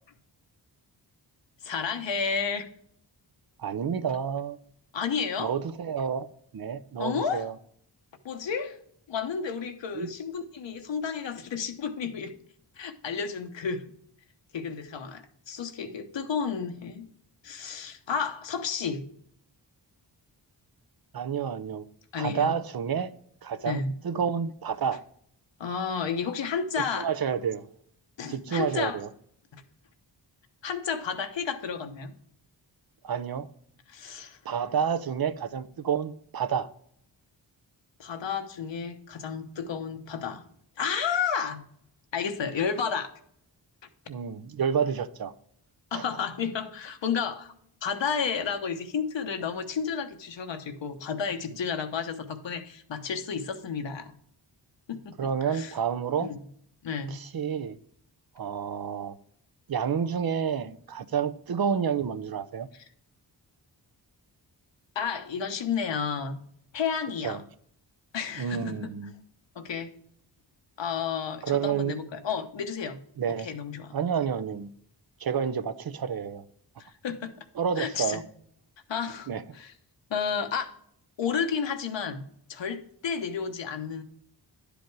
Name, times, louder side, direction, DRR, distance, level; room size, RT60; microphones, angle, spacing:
voice 1, 1.6-2.7 4.9-5.5 7.0-7.4 8.2-8.8 9.1-12.4 12.8-13.8 14.5-17.1 17.4-19.0 22.1-22.6 23.6-23.9 25.6-27.1 28.2-29.0 29.5-29.6 30.6-32.1 33.9-34.4 38.0-40.4 40.8-41.6 42.1-43.1 45.9-47.5 47.8-54.1 54.9-55.7 56.2-56.4 56.8-57.2 64.9-66.4 66.7-67.4 68.1-68.9 69.5-69.9 70.8-73.0 73.4-73.9 76.8-77.3 77.8-78.2 78.9-79.7 80.1-80.8 81.2-82.2 82.5-84.0, left 6 dB, 80° left, 1.0 m, -31 dB
voice 2, 3.6-4.6 5.4-6.3 6.5-7.5 9.9-10.1 21.1-21.8 22.2-23.1 23.4-25.0 26.8-27.6 28.3-29.1 33.0-33.5 34.4-36.7 44.1-45.3 45.9-46.0 55.2-56.3 57.1-57.8 58.4-59.2 59.7-62.7 67.2-67.4 68.4-69.1 71.4-72.0 73.2-73.5 73.9-74.7 75.2-76.4 77.6-78.2 79.3-79.4, right 7 dB, 55° right, 0.7 m, -29 dB
10.5 x 5.1 x 4.7 m
cardioid pair, 60°, 44 cm